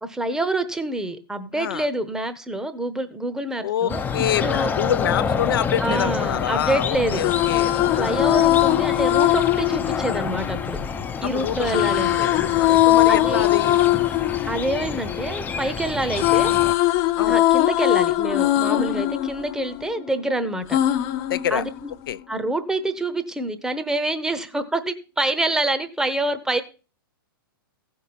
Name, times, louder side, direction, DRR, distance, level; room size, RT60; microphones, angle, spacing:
voice 1, 0.0-4.7 5.8-7.2 7.9-10.8 11.2-12.2 13.1-13.5 14.5-16.6 17.2-20.8 21.5-21.9 22.3-26.6, right 1 dB, 5° right, 0.9 m, -26 dB
voice 2, 1.5-1.9 3.6-8.1 11.2-11.8 12.2-14.1 17.2-17.4 21.3-21.6 22.1-22.2, left 10 dB, 70° left, 0.5 m, -27 dB
sound 1, 3.9-16.7, left 6 dB, 15° left, 0.6 m, -28 dB
sound 2, 7.0-11.0 11.6-15.7 16.0-20.2 20.7-22.1, left 15 dB, 40° left, 0.8 m, -21 dB
15.0 x 5.5 x 4.2 m
hypercardioid pair, 120°, 12 cm